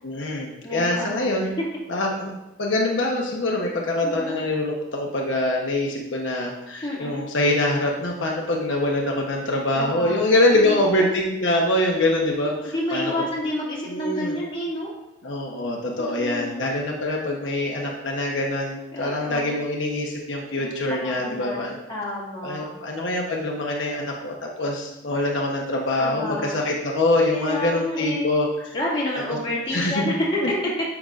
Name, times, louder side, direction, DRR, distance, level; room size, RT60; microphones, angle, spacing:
voice 1, 0.0-1.5 1.9-2.3 2.6-13.1 13.9-14.3 15.2-21.8 22.4-28.5 29.7-30.0 30.4-30.5, left 1 dB, 80° left, -1 dB, 1.0 m, -24 dB
voice 2, 0.6-1.5 4.0-4.4 6.8-7.2 9.7-11.1 12.6-14.9 16.0-16.7 18.9-19.6 20.6-22.7 26.0-26.6 27.3-28.3 28.7-30.5, left 1 dB, 25° left, -6 dB, 2.1 m, -30 dB
9.1 x 6.0 x 2.5 m, 0.92 s
head